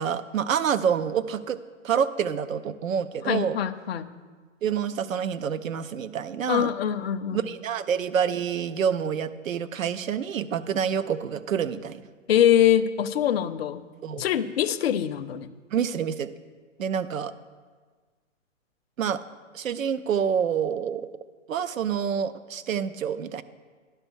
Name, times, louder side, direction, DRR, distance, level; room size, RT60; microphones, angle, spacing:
voice 1, 0.0-1.6 1.8-3.6 4.6-6.7 7.3-12.0 14.0-14.2 15.7-16.3 16.8-17.3 19.0-19.2 19.5-21.1 21.5-23.4, right 8 dB, 85° right, 14 dB, 0.7 m, -27 dB
voice 2, 3.3-4.1 6.5-7.4 12.3-13.8 14.2-15.5, left 10 dB, 50° left, 12 dB, 0.5 m, -23 dB
10.5 x 5.5 x 6.2 m, 1.5 s
hypercardioid pair, 145°, 39 cm